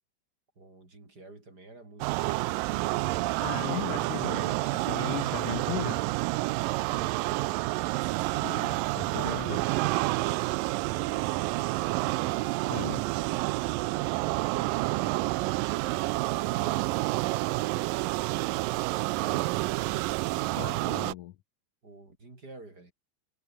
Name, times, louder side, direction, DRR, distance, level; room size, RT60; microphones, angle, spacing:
voice 1, 0.6-2.8 21.8-22.9, right 2 dB, 25° right, 4.8 m, -50 dB
sound 1, 2.0-21.1, right 21 dB, 85° right, 2.0 m, -29 dB
voice 2, 3.4-6.1 8.4-9.7 12.7-13.0 20.5-21.3, left 14 dB, 70° left, 1.9 m, -37 dB
omnidirectional pair, 4.5 m